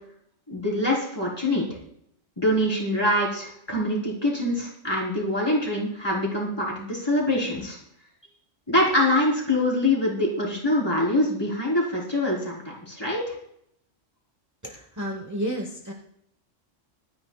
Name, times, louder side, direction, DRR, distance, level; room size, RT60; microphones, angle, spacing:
voice 1, 0.5-1.7 2.4-7.8 8.7-13.3, left 1 dB, 20° left, -5 dB, 4.2 m, -24 dB
voice 2, 14.6-15.9, equal, 15° right, 1 dB, 1.2 m, -31 dB
26.0 x 9.8 x 2.4 m, 0.71 s
omnidirectional pair, 1.3 m